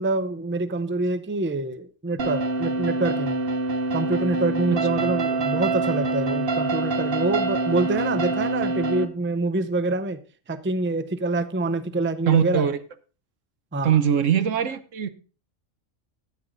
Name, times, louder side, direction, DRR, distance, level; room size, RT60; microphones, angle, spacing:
voice 1, 0.0-3.4 3.9-10.2 10.5-12.7 13.7-13.9, right 2 dB, 15° right, 0.5 m, -26 dB
sound 1, 2.2-9.1, right 3 dB, 50° right, 1.1 m, -25 dB
voice 2, 4.7-5.1 12.3-12.8 13.8-15.1, right 9 dB, 80° right, 1.3 m, -22 dB
13.0 x 9.4 x 3.9 m
omnidirectional pair, 1.3 m